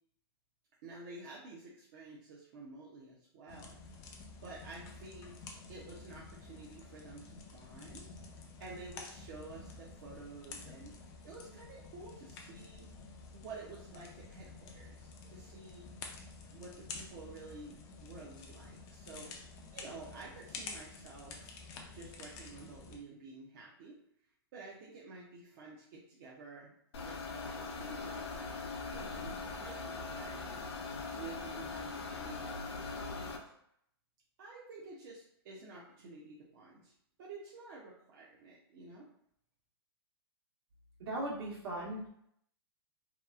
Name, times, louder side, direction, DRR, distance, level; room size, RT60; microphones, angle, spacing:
voice 1, 0.8-3.8 4.4-5.3 5.7-8.1 8.3-10.9 11.2-12.8 13.3-15.9 16.5-17.8 18.0-19.3 19.7-21.5 21.9-24.0 24.5-26.7 27.0-28.5 28.9-30.7 31.2-33.3 34.4-36.9 37.2-39.1, right 3 dB, 45° right, -5 dB, 0.6 m, -51 dB
sound 1, 3.5-23.0, left 4 dB, 25° left, 0.4 m, -50 dB
sound 2, 26.9-33.4, left 4 dB, 75° left, 0.6 m, -41 dB
voice 2, 41.0-42.1, right 1 dB, 70° right, -5 dB, 1.2 m, -38 dB
2.8 x 2.4 x 2.3 m, 0.71 s
hypercardioid pair, 145°, 13 cm